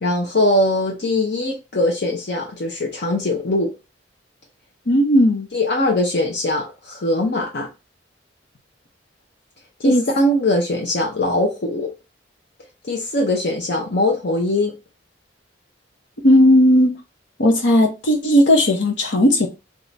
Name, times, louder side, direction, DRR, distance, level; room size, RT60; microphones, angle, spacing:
voice 1, 0.0-3.7 5.5-7.7 9.8-11.9 12.8-14.7, left 1 dB, 65° left, 0.8 m, -21 dB
voice 2, 4.9-5.5 9.8-10.0 16.2-16.9 17.4-19.5, left 1 dB, 85° left, 1.0 m, -15 dB
3.7 x 3.1 x 4.0 m
head